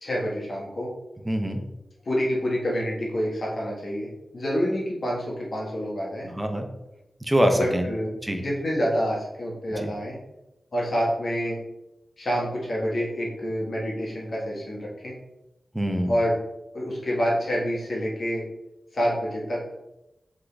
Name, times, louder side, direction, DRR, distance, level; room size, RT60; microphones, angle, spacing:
voice 1, 0.0-0.9 2.0-6.3 7.5-8.1 8.4-10.1 10.7-11.6 12.2-15.1 16.1-16.4 16.7-18.5 18.9-19.6, equal, 60° left, -4 dB, 1.5 m, -27 dB
voice 2, 1.2-1.6 6.3-6.7 7.2-7.9 8.2-8.4 9.8-9.9 15.7-16.2, equal, 10° right, 4 dB, 0.7 m, -24 dB
3.9 x 3.5 x 3.4 m, 0.92 s
wide cardioid pair, 70°, 0 cm